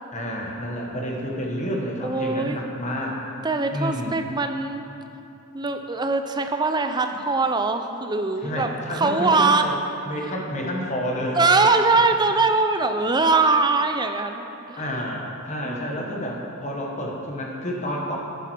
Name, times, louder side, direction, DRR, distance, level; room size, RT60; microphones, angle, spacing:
voice 1, 0.1-3.2 3.7-4.1 8.4-9.8 10.0-11.4 11.9-12.0 14.8-18.2, equal, 35° left, -1 dB, 1.5 m, -29 dB
voice 2, 2.0-2.6 3.4-4.8 5.5-9.7 11.4-14.8 15.6-16.1, right 3 dB, 20° right, 7 dB, 0.6 m, -22 dB
11.0 x 10.0 x 4.6 m, 2.7 s
head